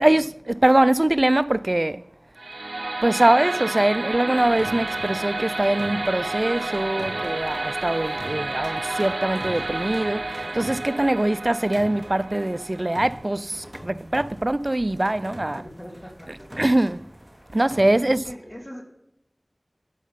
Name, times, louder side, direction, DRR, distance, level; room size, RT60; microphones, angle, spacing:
voice 1, 0.0-2.0 3.0-15.6 16.6-17.1 17.5-18.2, right 1 dB, 45° right, 0.4 m, -22 dB
sound 1, 2.4-13.4, right 2 dB, 85° right, 0.6 m, -30 dB
sound 2, 4.3-18.2, equal, ahead, 3.7 m, -43 dB
voice 2, 15.4-16.5 17.9-18.8, equal, 25° left, 2.9 m, -41 dB
17.0 x 8.4 x 5.8 m
wide cardioid pair, 40°, 0 cm